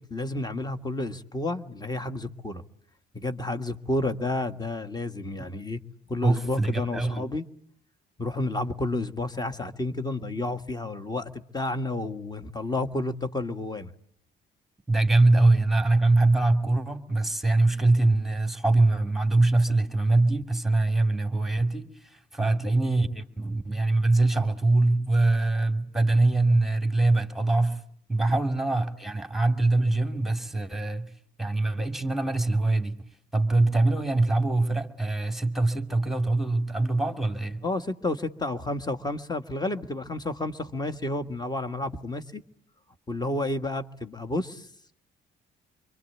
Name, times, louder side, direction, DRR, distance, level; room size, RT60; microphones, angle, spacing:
voice 1, 0.1-2.6 3.1-5.8 6.1-7.5 8.2-13.9 22.4-22.5 37.6-42.4 43.1-44.7, left 2 dB, 20° left, 1.7 m, -31 dB
voice 2, 6.2-7.2 14.9-27.8 28.1-31.1 31.4-33.0 33.3-37.6, right 2 dB, ahead, 2.6 m, -23 dB
26.5 x 23.5 x 8.5 m
cardioid pair, 90°, 20 cm